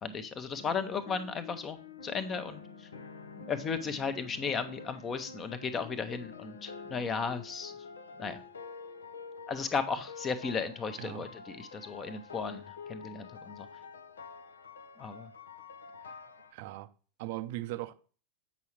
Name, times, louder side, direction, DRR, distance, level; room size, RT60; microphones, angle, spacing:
voice 1, 0.0-2.9 3.4-7.7 8.2-8.4 9.5-13.7 15.0-15.3, left 5 dB, 25° left, 0.9 m, -35 dB
sound 1, 0.5-16.5, left 5 dB, 70° left, 0.7 m, -48 dB
voice 2, 11.0-11.3 16.5-16.9 17.2-17.9, right 16 dB, 50° right, 0.5 m, -38 dB
8.2 x 5.7 x 3.0 m
figure-of-eight pair, 90°, 0 cm